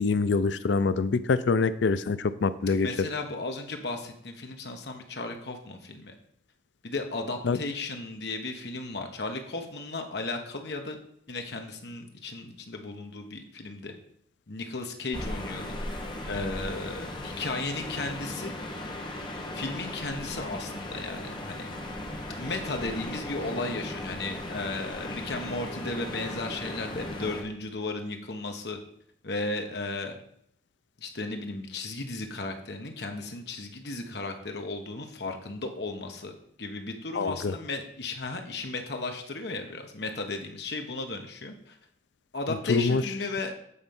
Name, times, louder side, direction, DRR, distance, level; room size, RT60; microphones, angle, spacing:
voice 1, 0.0-2.9 7.4-7.6 37.1-37.5 42.7-43.1, left 4 dB, 85° left, 14 dB, 0.5 m, -25 dB
voice 2, 2.8-6.1 6.8-11.0 11.3-13.9 14.5-15.8 16.3-18.5 19.5-21.7 22.4-28.8 29.2-30.1 31.0-36.3 36.6-41.8 42.3-43.5, left 3 dB, 70° left, 4 dB, 1.2 m, -35 dB
sound 1, 15.1-27.4, left 1 dB, 25° left, 1.1 m, -37 dB
8.4 x 4.4 x 5.4 m, 0.69 s
head